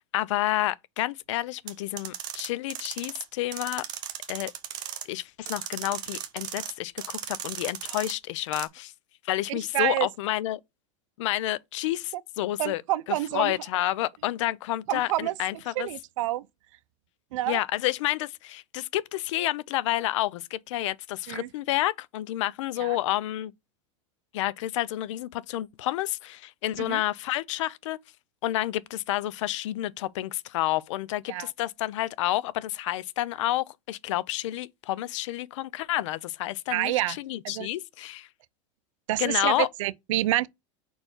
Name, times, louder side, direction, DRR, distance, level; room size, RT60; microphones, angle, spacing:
voice 1, 0.0-3.8 4.3-4.5 5.1-8.9 9.2-10.6 11.2-12.8 13.1-15.9 17.5-23.5 24.3-28.0 28.4-38.3 39.2-39.7, left 15 dB, 75° left, 0.6 m, -29 dB
sound 1, 1.7-3.2 3.5-5.0 5.5-6.7 7.0-8.1 8.5-8.7, right 10 dB, 25° right, 0.9 m, -36 dB
voice 2, 9.5-10.1 12.6-13.5 14.9-15.3 15.8-16.5 17.3-17.6 21.3-21.5 22.8-23.0 26.8-27.0 31.3-31.5 36.7-37.2 37.4-37.7 39.1-40.5, right 16 dB, 80° right, 0.5 m, -28 dB
5.0 x 4.5 x 4.4 m
supercardioid pair, 170°, 16 cm